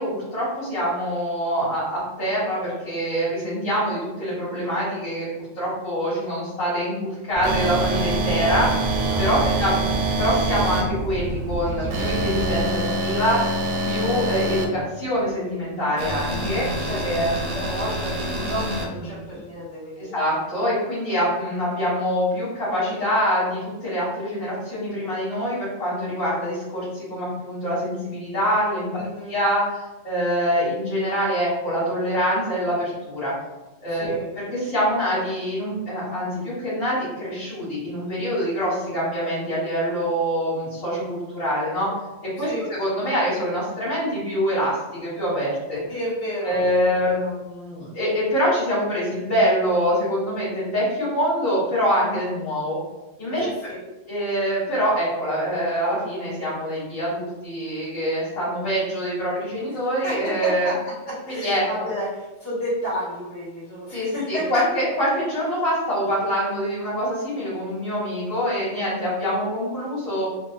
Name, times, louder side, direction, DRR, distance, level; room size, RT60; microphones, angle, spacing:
voice 1, 0.0-5.3 5.6-8.8 9.2-9.8 10.2-13.4 13.8-16.6 17.0-17.6 20.0-29.0 29.3-33.3 33.8-34.1 34.5-41.9 42.4-45.8 46.4-52.8 53.2-53.7 54.1-60.7 61.4-61.9 63.9-70.3, equal, 75° left, -10 dB, 1.9 m, -25 dB
sound 1, 7.3-12.6, right 1 dB, 55° right, 0.7 m, -29 dB
sound 2, 7.4-10.8 11.9-14.6 16.0-18.8, right 2 dB, 85° right, 1.0 m, -26 dB
voice 2, 9.1-9.9 16.6-17.2 17.5-20.1 29.0-29.4 33.9-34.3 42.4-42.6 45.9-47.3 53.4-53.8 60.0-60.8 61.0-64.6, equal, 60° left, -10 dB, 1.8 m, -32 dB
sound 3, 10.3-19.4, left 2 dB, 10° left, 0.7 m, -40 dB
3.9 x 2.3 x 2.4 m, 1.0 s
omnidirectional pair, 1.4 m